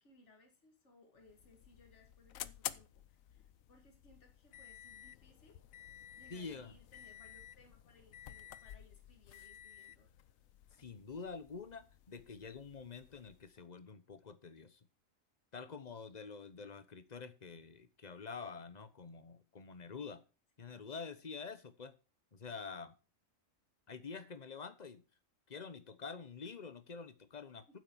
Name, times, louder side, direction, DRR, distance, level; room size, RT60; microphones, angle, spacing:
voice 1, 0.0-5.6 6.2-10.1 27.7-27.8, left 3 dB, 60° left, 2.4 m, -65 dB
sound 1, 1.2-13.6, left 11 dB, 85° left, 1.1 m, -52 dB
voice 2, 6.3-6.7 10.8-14.8 15.5-20.2 20.6-21.9 22.3-23.0 23.9-25.0 25.5-27.8, left 5 dB, 35° left, 1.1 m, -47 dB
9.4 x 7.7 x 6.3 m
omnidirectional pair, 1.4 m